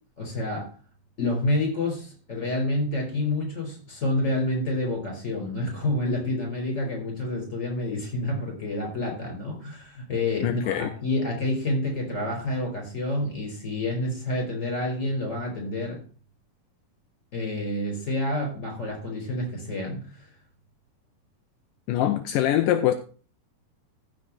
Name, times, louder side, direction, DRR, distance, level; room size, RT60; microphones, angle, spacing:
voice 1, 0.2-0.7 1.2-16.0 17.3-20.3, left 1 dB, 20° left, 5.2 m, -28 dB
voice 2, 10.4-10.9 21.9-22.9, left 12 dB, 80° left, 2.0 m, -23 dB
15.0 x 6.1 x 4.3 m
omnidirectional pair, 4.4 m